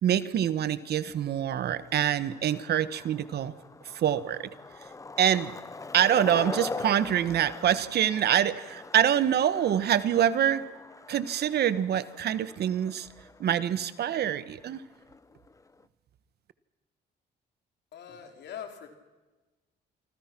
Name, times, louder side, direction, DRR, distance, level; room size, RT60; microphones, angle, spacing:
voice 1, 0.0-3.5 3.9-4.5 5.2-5.5 5.9-10.6 11.1-13.1 13.4-14.8, right 10 dB, 65° right, 14 dB, 1.3 m, -25 dB
Skateboard, 0.7-15.8, left 3 dB, 15° left, 0.8 m, -43 dB
voice 2, 17.9-18.9, left 8 dB, 70° left, 4 dB, 3.9 m, -42 dB
27.0 x 25.5 x 6.1 m, 1.2 s
cardioid pair, 100°, 18 cm